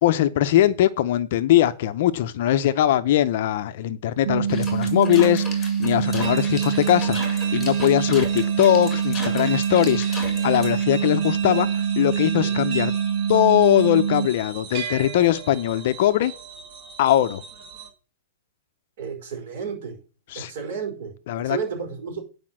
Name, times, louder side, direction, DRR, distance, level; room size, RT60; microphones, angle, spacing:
voice 1, 0.0-12.9 13.3-16.3 17.0-17.4 20.3-20.5 21.3-21.6, left 12 dB, 40° left, 0.6 m, -21 dB
sound 1, 4.3-14.3, right 8 dB, 70° right, 1.4 m, -25 dB
sound 2, 4.5-10.8, left 3 dB, 5° left, 1.8 m, -37 dB
sound 3, 6.0-17.9, right 6 dB, 30° right, 1.6 m, -37 dB
voice 2, 19.0-20.0 20.3-22.2, right 6 dB, 45° right, 5.0 m, -32 dB
9.8 x 5.1 x 7.4 m
hypercardioid pair, 175°, 0 cm